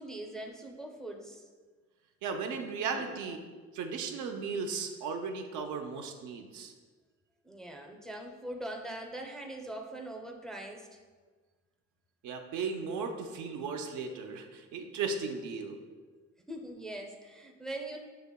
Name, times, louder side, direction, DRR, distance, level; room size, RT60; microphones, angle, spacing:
voice 1, 0.0-1.5 3.0-3.1 7.4-11.0 16.5-18.0, right 1 dB, ahead, 1 dB, 0.4 m, -42 dB
voice 2, 2.2-3.4 3.7-6.7 12.2-15.8, right 5 dB, 80° right, 4 dB, 0.5 m, -36 dB
6.6 x 2.8 x 2.2 m, 1.4 s
cardioid pair, 90°, 30 cm